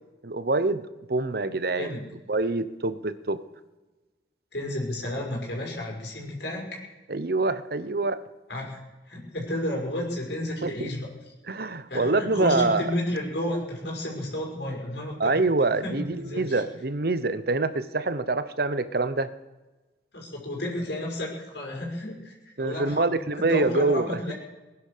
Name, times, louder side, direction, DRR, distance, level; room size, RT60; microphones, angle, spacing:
voice 1, 0.2-2.0 2.3-3.4 7.1-8.2 10.6-10.9 11.5-12.8 15.2-19.3 22.6-24.3, right 3 dB, 60° right, 13 dB, 0.9 m, -25 dB
voice 2, 1.7-2.0 4.5-6.8 8.5-8.8 9.1-11.1 11.9-16.6 20.1-24.3, left 1 dB, 70° left, -1 dB, 5.5 m, -32 dB
19.5 x 10.5 x 6.7 m, 1.1 s
head